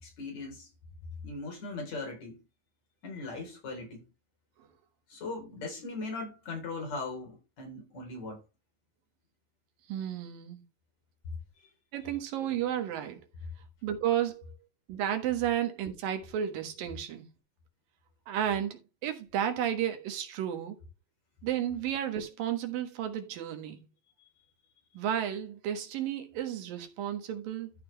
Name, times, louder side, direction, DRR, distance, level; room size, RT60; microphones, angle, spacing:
voice 1, 0.0-0.7 1.2-2.4 3.0-4.1 5.1-8.4 11.6-11.7, left 3 dB, 55° left, 5.2 m, -39 dB
voice 2, 9.9-10.6 11.9-13.2 13.8-14.4 14.9-17.3 18.3-20.8 21.4-23.8 24.9-27.7, right 10 dB, 85° right, 3.3 m, -32 dB
13.5 x 5.9 x 3.4 m
omnidirectional pair, 3.9 m